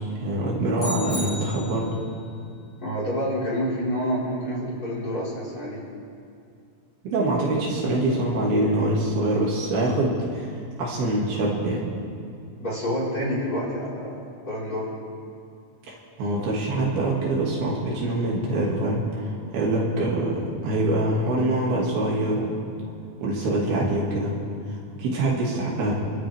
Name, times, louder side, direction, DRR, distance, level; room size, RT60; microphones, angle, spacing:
voice 1, 0.2-1.9 7.0-10.5 10.8-11.8 15.9-22.5 23.2-24.4 24.7-25.9, right 1 dB, 90° right, -4 dB, 4.5 m, -24 dB
sound 1, 0.8-2.1, left 1 dB, 50° left, 6.7 m, -34 dB
voice 2, 2.8-5.8 12.6-14.9, equal, 25° left, -7 dB, 5.2 m, -28 dB
29.0 x 12.5 x 3.7 m, 2.4 s
omnidirectional pair, 4.3 m